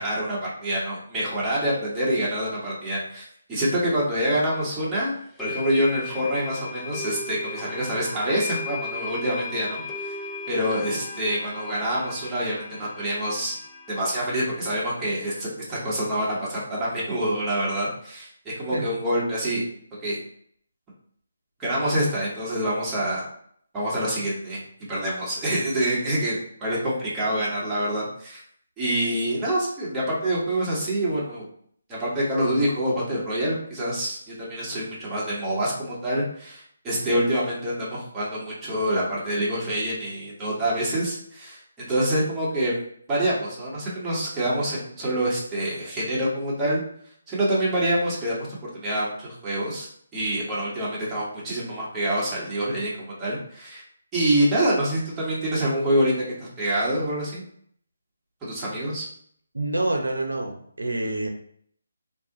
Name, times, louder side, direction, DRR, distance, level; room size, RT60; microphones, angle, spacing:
voice 1, 0.0-10.2 10.5-13.6 13.9-19.6 20.0-20.2 21.6-23.2 23.7-24.6 24.9-26.3 26.6-28.4 28.8-31.4 31.9-42.8 43.1-46.8 47.3-49.9 50.1-53.8 54.1-57.4 58.4-59.1, right 1 dB, 15° right, -7 dB, 1.2 m, -26 dB
sound 1, 4.3-4.4 5.4-15.5, left 4 dB, 15° left, 0.4 m, -37 dB
voice 2, 59.5-61.3, right 2 dB, 90° right, 3 dB, 0.7 m, -27 dB
2.7 x 2.4 x 3.7 m, 0.63 s
figure-of-eight pair, 155°, 0 cm